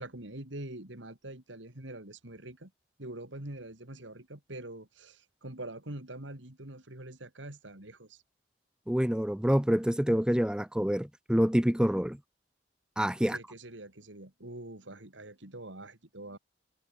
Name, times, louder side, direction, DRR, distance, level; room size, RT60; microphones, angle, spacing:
voice 1, 0.0-2.7 3.0-8.2 13.3-16.4, right 1 dB, 90° right, 3.9 m, -44 dB
voice 2, 8.9-12.2 13.0-13.4, equal, 5° right, 0.5 m, -27 dB
head